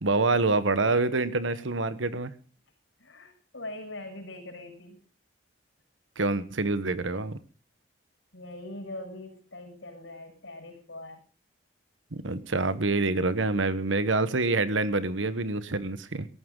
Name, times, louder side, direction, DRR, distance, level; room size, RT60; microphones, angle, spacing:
voice 1, 0.0-2.3 6.2-7.4 12.1-16.3, right 3 dB, 80° right, 13 dB, 1.2 m, -26 dB
voice 2, 3.0-5.0 8.3-11.2, left 1 dB, 90° left, 2 dB, 6.5 m, -42 dB
18.0 x 14.5 x 3.9 m, 0.38 s
head